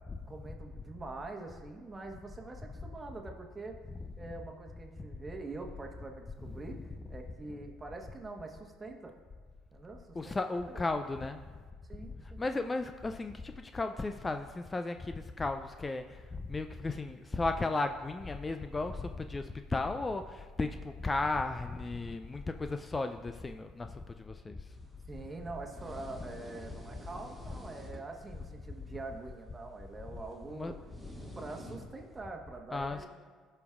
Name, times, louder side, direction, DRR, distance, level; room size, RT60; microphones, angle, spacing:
voice 1, 0.3-3.8 4.2-9.1 9.7-10.8 11.9-12.4 25.1-30.9 31.3-33.1, right 3 dB, 25° right, 3 dB, 1.2 m, -45 dB
voice 2, 3.9-4.3 6.4-6.6 7.0-7.2 10.1-11.4 12.2-24.6 27.5-27.6 30.5-30.7 32.7-33.1, left 3 dB, 25° left, 8 dB, 0.4 m, -35 dB
sound 1, 24.7-32.2, equal, 5° left, 1.8 m, -52 dB
16.0 x 5.3 x 2.4 m, 1.5 s
hypercardioid pair, 65°, 0 cm